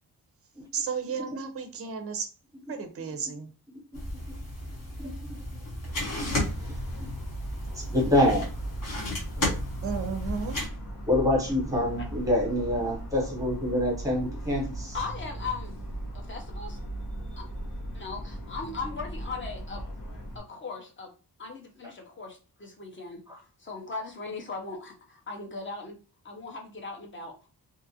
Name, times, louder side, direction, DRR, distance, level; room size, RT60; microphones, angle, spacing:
voice 1, 0.7-2.3 2.7-3.5 9.8-10.5, right 6 dB, 40° right, 7 dB, 0.4 m, -33 dB
sound 1, 3.9-10.7, left 1 dB, 55° left, 1.0 m, -34 dB
Motor vehicle (road) / Siren, 5.9-20.4, right 1 dB, 85° left, 1.0 m, -38 dB
voice 2, 7.7-8.5 9.4-9.6 11.1-15.0 23.3-23.4, left 1 dB, 10° right, -1 dB, 0.9 m, -26 dB
voice 3, 14.9-15.7 16.1-16.8 17.4-17.5 17.9-19.8 20.3-21.1 21.4-23.2 23.6-26.0 26.2-27.3, left 4 dB, 30° left, 1 dB, 0.6 m, -38 dB
2.7 x 2.3 x 2.6 m, 0.35 s
wide cardioid pair, 175°, 39 cm